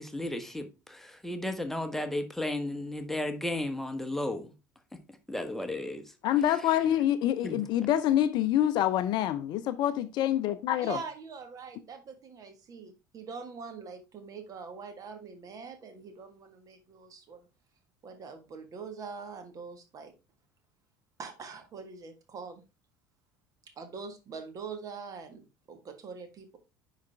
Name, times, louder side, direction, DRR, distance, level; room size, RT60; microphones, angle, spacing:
voice 1, 0.0-4.5 5.3-6.0 7.4-7.7, left 1 dB, 5° left, 1.3 m, -34 dB
voice 2, 6.2-11.0, left 11 dB, 50° left, 0.6 m, -26 dB
voice 3, 10.8-17.5 18.0-20.1 21.2-22.6 23.8-26.6, right 5 dB, 35° right, 1.7 m, -43 dB
10.5 x 4.2 x 3.4 m
figure-of-eight pair, 65°, 10 cm